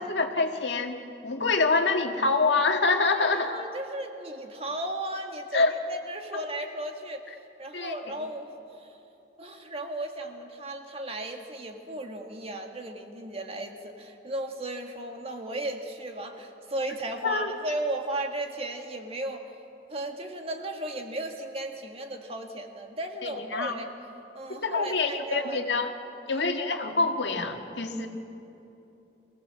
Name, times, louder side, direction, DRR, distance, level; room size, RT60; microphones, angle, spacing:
voice 1, 0.0-3.6 5.5-5.7 7.7-7.9 17.2-17.5 23.2-23.8 24.5-25.9 26.3-28.1, left 3 dB, 85° left, 4 dB, 1.7 m, -26 dB
voice 2, 3.2-9.0 9.4-19.5 19.9-23.9 24.3-25.7 26.3-26.5, right 1 dB, 35° right, 4 dB, 1.8 m, -35 dB
24.0 x 16.5 x 7.7 m, 2.9 s
head